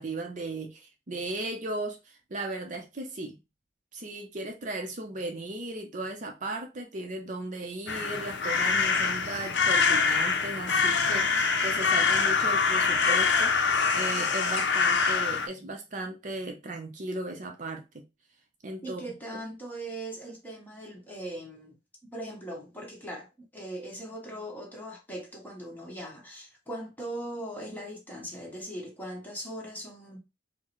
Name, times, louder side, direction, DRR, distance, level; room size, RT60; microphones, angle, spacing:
voice 1, 0.0-3.4 3.9-18.0 18.6-19.0, right 2 dB, 45° right, 0.6 m, -36 dB
sound 1, 7.9-15.5, left 5 dB, 80° left, 0.5 m, -25 dB
voice 2, 18.8-21.7 22.1-30.2, right 1 dB, 10° left, 1.2 m, -40 dB
4.5 x 2.1 x 3.0 m
head